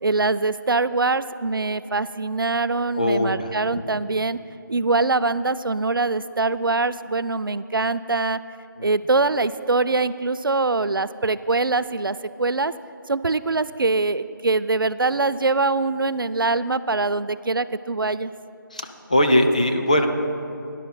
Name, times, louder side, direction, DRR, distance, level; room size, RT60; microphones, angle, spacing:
voice 1, 0.0-4.4 4.7-8.4 8.8-12.7 13.1-18.3, right 3 dB, 80° right, 14 dB, 0.4 m, -23 dB
voice 2, 2.9-3.8 8.8-8.9 18.7-20.1, left 1 dB, 20° left, 4 dB, 0.4 m, -21 dB
18.0 x 10.5 x 2.2 m, 2.6 s
figure-of-eight pair, 160°, 11 cm